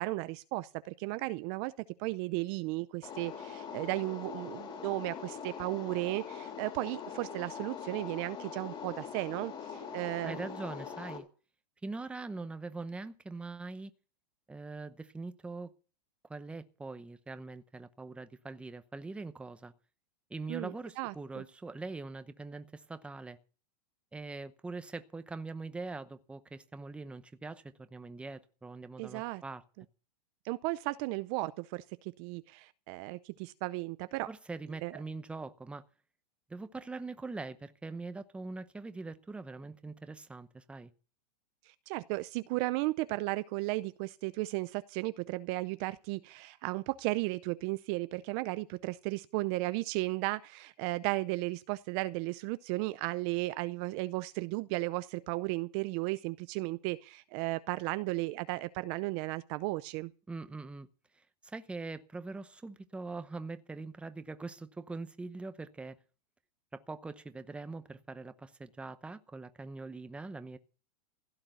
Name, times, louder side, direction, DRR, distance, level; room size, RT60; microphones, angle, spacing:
voice 1, 0.0-1.7 2.0-10.4 20.5-21.4 29.0-29.4 30.4-34.3 34.8-35.0 41.7-60.1, right 20 dB, 35° right, 0.6 m, -35 dB
sound 1, 3.0-11.2, left 7 dB, 25° left, 3.5 m, -43 dB
voice 2, 10.2-11.3 11.8-13.9 14.5-15.7 16.3-19.7 20.3-23.4 24.1-29.6 34.3-35.8 36.5-40.9 60.3-60.9 61.1-66.0 66.7-70.6, right 3 dB, 5° right, 0.8 m, -42 dB
16.0 x 6.6 x 9.1 m
supercardioid pair, 150°, 21 cm